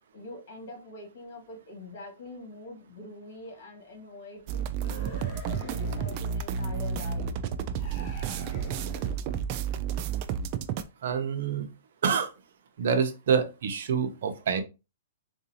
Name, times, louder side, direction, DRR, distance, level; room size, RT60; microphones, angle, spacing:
voice 1, 0.1-7.3, left 2 dB, 55° left, 2 dB, 1.7 m, -44 dB
sound 1, 4.5-10.8, right 7 dB, 35° right, 0.3 m, -31 dB
sound 2, 4.7-6.4 7.7-9.3, equal, 25° left, 1.5 m, -44 dB
voice 2, 11.0-11.7 12.0-12.3 12.8-14.6, right 6 dB, 65° right, 7 dB, 0.7 m, -27 dB
3.9 x 2.6 x 2.8 m, 0.28 s
hypercardioid pair, 155°, 0 cm